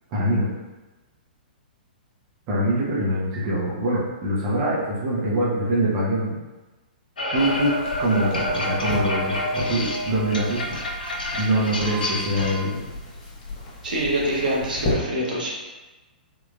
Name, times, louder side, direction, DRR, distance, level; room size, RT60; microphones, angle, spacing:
voice 1, 0.1-0.5 2.5-6.4 7.3-10.6 11.3-12.9, right 1 dB, 35° right, -6 dB, 0.9 m, -24 dB
sound 1, 7.2-12.6, left 1 dB, 70° left, 0.6 m, -28 dB
sound 2, 7.4-14.9, left 2 dB, 30° left, 0.9 m, -36 dB
voice 2, 13.8-15.5, right 1 dB, 65° right, -4 dB, 0.9 m, -25 dB
3.7 x 2.9 x 2.4 m, 1.2 s
figure-of-eight pair, 110°, 5 cm